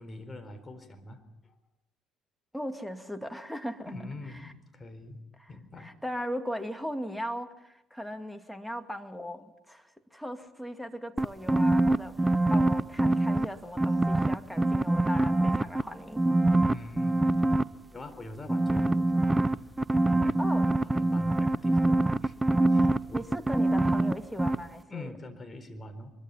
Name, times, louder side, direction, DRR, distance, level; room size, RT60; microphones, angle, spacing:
voice 1, 0.0-1.5 3.9-5.2 5.5-5.9 16.7-17.4 17.9-19.4 20.0-20.4 20.9-22.4 22.7-23.3 24.9-26.1, left 2 dB, 25° left, 7 dB, 4.3 m, -44 dB
voice 2, 2.5-3.9 4.4-4.5 5.4-5.5 5.8-16.3 20.4-20.7 23.1-25.1, equal, ahead, 7 dB, 2.5 m, -38 dB
sound 1, 11.2-13.4 13.8-15.8 16.2-17.6 18.5-24.1 24.4-24.6, right 2 dB, 15° right, 0.8 m, -24 dB
24.0 x 23.0 x 5.8 m, 0.90 s
hypercardioid pair, 55°, 0 cm